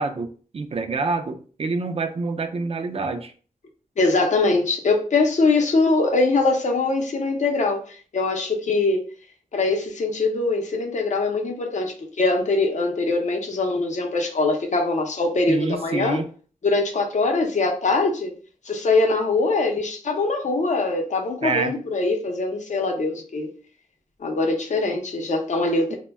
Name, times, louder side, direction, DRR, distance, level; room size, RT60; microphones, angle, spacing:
voice 1, 0.0-3.3 15.5-16.3 21.4-21.7, right 4 dB, 45° right, 7 dB, 0.4 m, -27 dB
voice 2, 4.0-7.8 8.1-9.1 9.5-16.2 16.6-18.3 18.7-23.5 24.2-25.9, left 3 dB, 55° left, 2 dB, 0.6 m, -22 dB
2.2 x 2.1 x 3.3 m, 0.41 s
wide cardioid pair, 90°, 14 cm